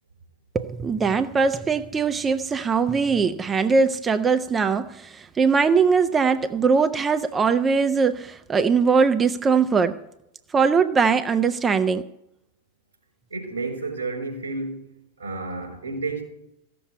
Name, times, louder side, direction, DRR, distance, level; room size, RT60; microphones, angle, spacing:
voice 1, 0.5-10.0 10.5-12.1, right 5 dB, 20° right, 0.6 m, -21 dB
voice 2, 13.3-14.9 15.2-16.2, right 3 dB, 80° right, 4.8 m, -31 dB
15.0 x 7.0 x 9.4 m
figure-of-eight pair, 90°, 0 cm